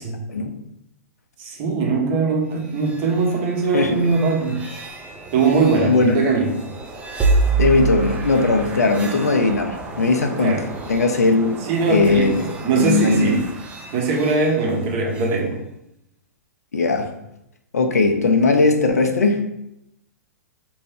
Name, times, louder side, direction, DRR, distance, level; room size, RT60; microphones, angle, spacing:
voice 1, 1.4-4.6 5.3-6.6 10.4-10.7 11.6-13.5 13.9-15.6, right 4 dB, 40° right, 0 dB, 1.0 m, -21 dB
sound 1, 2.5-15.4, right 3 dB, 15° right, 0.6 m, -28 dB
voice 2, 5.8-6.3 7.6-10.6 10.9-11.5 11.9-12.4 12.7-13.4 16.7-17.1 17.7-19.4, left 3 dB, 70° left, 5 dB, 0.6 m, -18 dB
4.3 x 2.6 x 3.4 m, 0.83 s
figure-of-eight pair, 110°, 9 cm